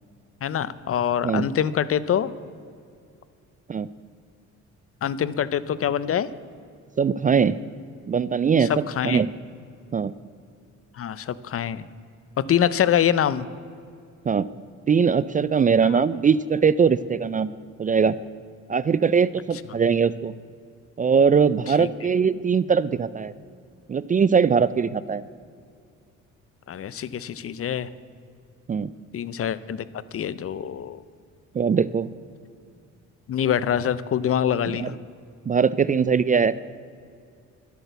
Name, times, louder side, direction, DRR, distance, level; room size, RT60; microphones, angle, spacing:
voice 1, 0.4-2.3 5.0-6.3 8.7-9.2 11.0-11.9 12.4-13.5 15.9-16.0 21.8-21.9 26.7-27.9 29.1-29.8 30.1-31.0 33.3-34.9, left 9 dB, 50° left, 17 dB, 0.6 m, -25 dB
voice 2, 7.0-7.6 8.1-9.3 9.9-10.1 14.3-14.5 14.9-17.5 17.8-18.2 18.7-20.3 21.0-23.3 23.9-25.2 28.7-28.9 31.5-32.1 34.7-34.9 35.5-36.6, right 6 dB, 30° right, 17 dB, 0.4 m, -21 dB
12.0 x 8.3 x 8.0 m, 2.3 s
cardioid pair, 90°, 30 cm